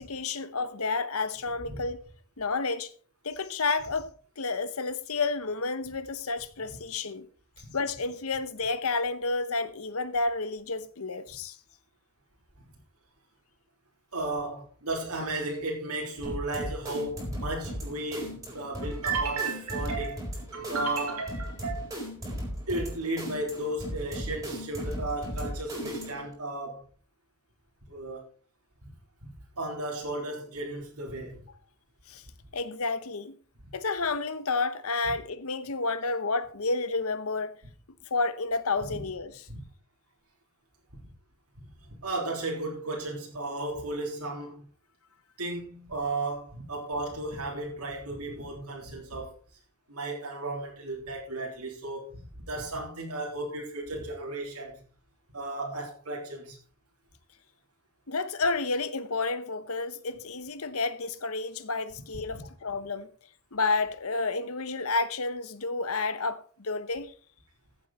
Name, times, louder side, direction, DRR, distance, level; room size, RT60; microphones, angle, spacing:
voice 1, 0.0-2.0 2.4-2.9 3.2-7.3 7.7-11.6 32.1-32.2 32.5-33.4 33.7-37.5 38.1-39.4 58.1-63.1 63.5-67.1, left 3 dB, 65° left, 1.0 m, -30 dB
voice 2, 14.1-21.9 22.7-26.9 27.9-28.3 28.8-28.9 29.2-31.4 38.9-39.0 39.5-39.6 40.9-41.0 41.6-44.6 45.4-49.3 49.9-54.7 55.3-56.6 62.3-62.4, right 2 dB, 85° right, 3.6 m, -34 dB
sound 1, 16.2-26.3, equal, 15° right, 4.2 m, -37 dB
15.0 x 7.8 x 4.2 m
head